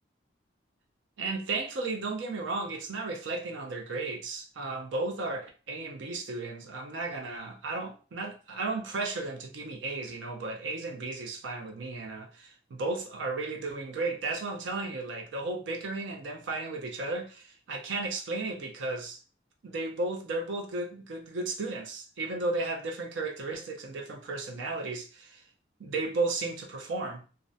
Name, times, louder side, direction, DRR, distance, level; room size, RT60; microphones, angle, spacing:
voice 1, 1.2-19.2 19.6-25.4 25.8-27.2, right 3 dB, 80° right, 0.5 m, -34 dB
2.3 x 2.1 x 2.6 m
head